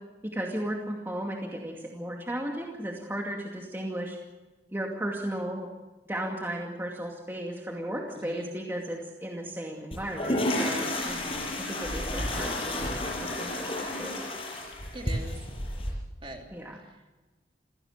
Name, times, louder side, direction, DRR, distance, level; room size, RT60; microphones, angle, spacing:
voice 1, 0.3-4.2 4.7-5.7 6.1-10.9 11.6-14.3 16.5-16.8, right 1 dB, 15° right, 0 dB, 2.4 m, -35 dB
voice 2, 8.1-8.5 11.0-11.5 12.2-12.4 14.9-15.4 16.2-16.8, right 1 dB, 30° right, 2 dB, 3.2 m, -42 dB
sound 1, 9.9-15.9, left 1 dB, 30° left, 6.5 m, -31 dB
27.5 x 17.0 x 6.7 m, 1.2 s
head